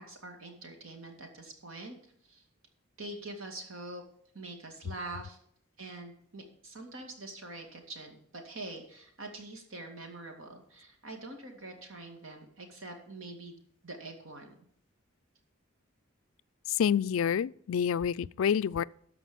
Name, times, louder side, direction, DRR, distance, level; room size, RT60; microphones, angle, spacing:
voice 1, 0.0-2.0 2.3-2.4 3.0-4.0 4.3-5.4 5.8-14.5, right 2 dB, 75° right, 2.3 m, -44 dB
voice 2, 16.7-18.8, left 8 dB, 75° left, 0.3 m, -28 dB
13.5 x 4.9 x 7.0 m
head